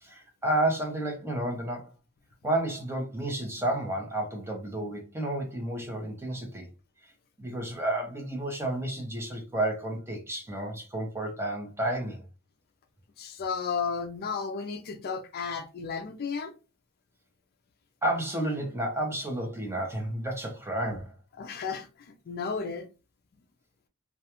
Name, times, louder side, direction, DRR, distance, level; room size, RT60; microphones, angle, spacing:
voice 1, 0.0-1.9 2.4-6.7 7.4-12.2 18.0-21.1, right 1 dB, 10° right, 0.6 m, -31 dB
voice 2, 13.2-16.5 21.4-22.9, left 5 dB, 45° left, 0.4 m, -33 dB
2.3 x 2.2 x 2.8 m
head